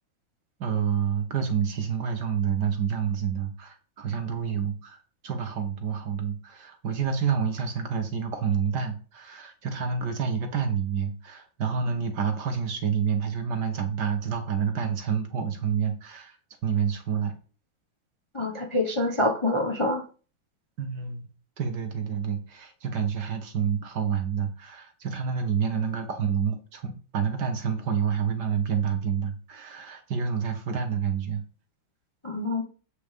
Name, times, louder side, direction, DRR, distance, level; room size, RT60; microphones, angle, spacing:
voice 1, 0.6-5.0 5.2-16.4 16.6-17.3 20.8-21.3 21.6-31.4, right 7 dB, 55° right, 6 dB, 1.7 m, -28 dB
voice 2, 18.3-20.0 32.2-32.6, left 1 dB, 20° left, 2 dB, 0.9 m, -26 dB
8.5 x 5.1 x 5.1 m, 0.38 s
omnidirectional pair, 2.3 m